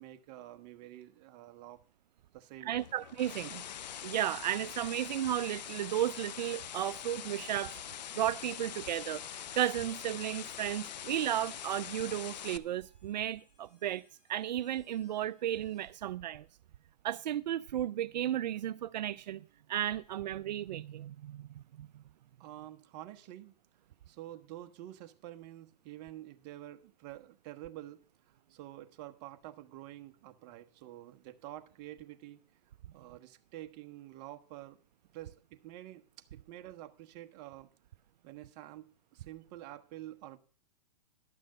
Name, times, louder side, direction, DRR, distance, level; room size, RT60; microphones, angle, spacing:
voice 1, 0.0-1.8 2.3-2.9 22.4-23.5 24.1-28.0 28.5-32.4 32.9-34.8 35.1-37.7 38.2-40.4, right 14 dB, 40° right, 1.1 m, -48 dB
voice 2, 2.6-3.6 4.0-7.8 8.1-14.0 14.3-16.5 17.0-22.0, right 12 dB, 80° right, 0.4 m, -34 dB
sound 1, 2.8-12.6, left 10 dB, 85° left, 0.6 m, -44 dB
sound 2, 7.2-16.1, left 4 dB, 50° left, 7.5 m, -72 dB
11.5 x 6.3 x 6.5 m
hypercardioid pair, 135°, 21 cm